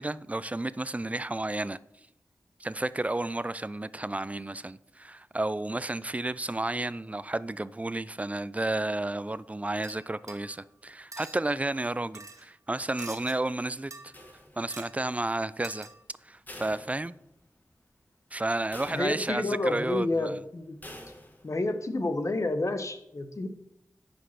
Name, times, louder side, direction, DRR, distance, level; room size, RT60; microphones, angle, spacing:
voice 1, 0.0-1.8 2.6-14.1 14.6-15.9 16.2-17.1 18.3-20.4, right 2 dB, 25° right, 0.4 m, -32 dB
sound 1, 9.8-10.5 11.1-11.4 12.1-12.4 13.0-13.3 13.9-14.4 14.7-15.0 15.6-16.0, right 3 dB, 60° right, 1.5 m, -45 dB
sound 2, 14.1-15.0 16.5-17.6 18.0-18.1 18.7-19.6 20.8-21.6, left 1 dB, 30° left, 1.7 m, -47 dB
voice 2, 18.9-20.8 21.4-23.5, left 2 dB, 55° left, 1.1 m, -29 dB
10.0 x 5.3 x 5.9 m
cardioid pair, 50°, 6 cm